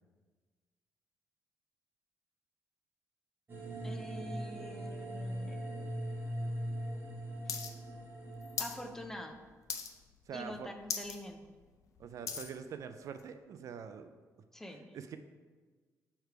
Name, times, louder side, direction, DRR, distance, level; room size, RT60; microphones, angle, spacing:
sound 1, 3.5-9.0, right 1 dB, 35° right, 1.2 m, -40 dB
voice 1, 3.8-6.4 7.5-7.7 8.6-9.4 10.3-11.4 14.5-15.0, left 1 dB, 5° left, 4 dB, 0.5 m, -46 dB
sound 2, 7.5-7.7 8.0-8.8 9.2-9.4 9.7-10.1 10.5-10.6 10.8-11.2 11.6-12.5 13.2-13.3, left 7 dB, 60° left, 0.6 m, -38 dB
voice 2, 10.3-10.7 12.0-14.1 14.9-15.2, right 7 dB, 55° right, 9 dB, 0.3 m, -44 dB
6.6 x 3.3 x 4.6 m, 1.4 s
cardioid pair, 125°, 6 cm